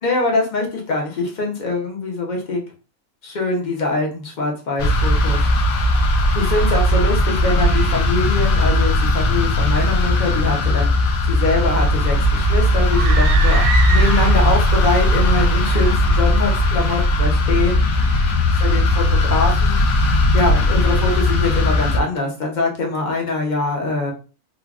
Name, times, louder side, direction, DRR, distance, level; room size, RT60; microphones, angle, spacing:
voice 1, 0.0-2.6 3.2-5.4 6.3-17.8 18.5-19.8 20.3-24.1, left 3 dB, 40° left, 0 dB, 0.8 m, -23 dB
sound 1, 4.8-22.0, left 1 dB, 75° left, 1.1 m, -17 dB
sound 2, 12.9-14.7, right 6 dB, 75° right, 1.0 m, -25 dB
3.3 x 2.2 x 2.4 m, 0.35 s
omnidirectional pair, 1.5 m